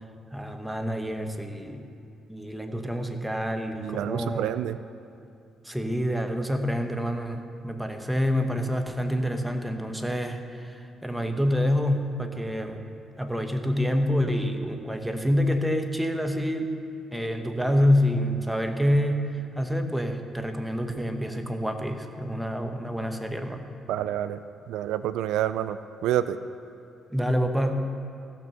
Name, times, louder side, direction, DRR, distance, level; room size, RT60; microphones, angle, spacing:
voice 1, 0.3-1.8 2.3-4.5 5.6-12.8 13.2-16.7 17.1-23.7 27.1-27.7, equal, 5° right, 6 dB, 1.0 m, -27 dB
voice 2, 3.8-4.8 23.9-24.4 24.7-26.4, right 12 dB, 90° right, 13 dB, 0.3 m, -28 dB
15.0 x 6.2 x 6.7 m, 2.5 s
cardioid pair, 90°, 0 cm